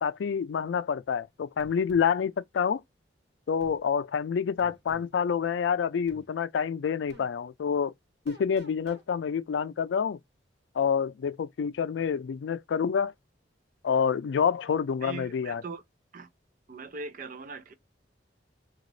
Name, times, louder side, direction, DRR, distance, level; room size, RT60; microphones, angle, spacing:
voice 1, 0.0-2.8 3.5-7.9 8.3-10.2 10.7-13.1 13.8-15.6, left 7 dB, 85° left, 0.4 m, -28 dB
sound 1, 1.6-2.1 3.6-3.8 4.6-5.1 6.1-6.3 7.1-7.3 8.3-9.0, right 1 dB, 65° right, 1.1 m, -50 dB
voice 2, 15.0-15.8 16.1-16.3 16.7-17.7, right 4 dB, 50° right, 0.5 m, -40 dB
3.8 x 2.4 x 3.1 m
head